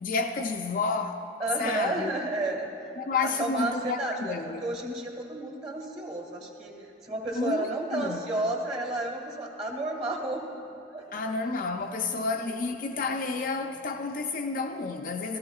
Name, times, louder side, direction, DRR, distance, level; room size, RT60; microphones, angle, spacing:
voice 1, 0.0-1.2 1.6-2.1 3.0-4.6 7.4-8.2 11.1-15.4, left 4 dB, 45° left, 0.4 m, -30 dB
voice 2, 1.4-2.7 3.2-4.3 4.6-6.7 7.0-10.6 10.9-11.3 12.2-12.3 15.3-15.4, right 2 dB, 35° right, 1.6 m, -32 dB
15.5 x 14.0 x 2.3 m
head